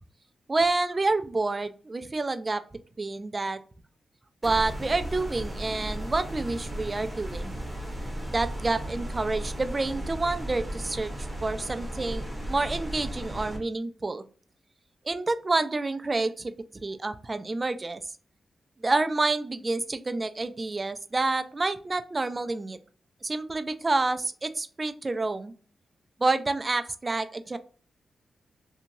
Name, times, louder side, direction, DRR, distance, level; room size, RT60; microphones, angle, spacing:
voice 1, 0.5-2.6 3.0-3.6 4.4-7.5 8.3-14.2 15.1-16.6 16.8-18.0 18.8-22.8 23.2-25.5 26.2-27.6, right 3 dB, 35° right, 11 dB, 0.3 m, -28 dB
sound 1, 4.4-13.6, right 1 dB, 10° right, 1.2 m, -35 dB
2.8 x 2.8 x 2.5 m, 0.40 s
cardioid pair, 65°, 0 cm